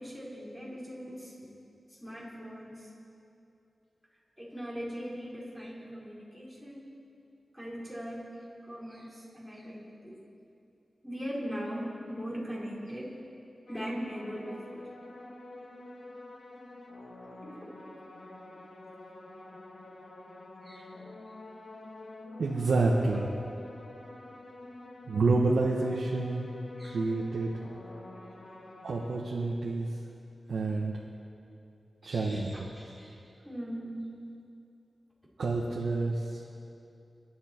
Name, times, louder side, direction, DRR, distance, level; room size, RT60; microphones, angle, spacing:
voice 1, 0.0-1.5 1.9-2.9 4.4-6.9 7.5-8.3 8.6-10.2 11.0-13.1 13.7-14.9 17.4-17.8 20.6-21.0 22.8-23.4 26.8-27.0 32.0-34.1, equal, ahead, -6 dB, 4.6 m, -40 dB
sound 1, 13.7-29.2, left 2 dB, 65° left, 1.7 m, -48 dB
voice 2, 22.4-23.2 25.1-26.5 26.8-27.5 28.8-29.9 30.5-31.0 32.0-32.7 35.4-36.4, right 3 dB, 90° right, -3 dB, 1.4 m, -28 dB
26.0 x 11.0 x 4.6 m, 2.6 s
wide cardioid pair, 90°, 0 cm